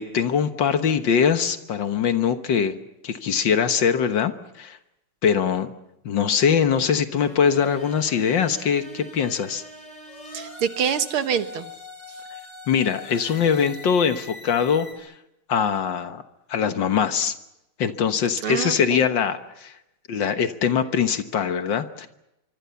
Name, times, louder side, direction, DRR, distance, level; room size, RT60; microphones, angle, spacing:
voice 1, 0.0-2.8 3.0-4.3 4.6-4.8 5.2-5.7 6.1-9.6 12.7-15.1 15.5-16.2 16.5-17.4 17.8-19.7 20.1-22.1, left 7 dB, 65° left, 9 dB, 1.9 m, -22 dB
sound 1, 7.1-14.9, left 2 dB, 35° left, 5.3 m, -42 dB
voice 2, 10.3-11.7 18.4-19.0, right 8 dB, 85° right, 10 dB, 2.2 m, -25 dB
25.5 x 24.0 x 7.0 m, 0.87 s
omnidirectional pair, 2.3 m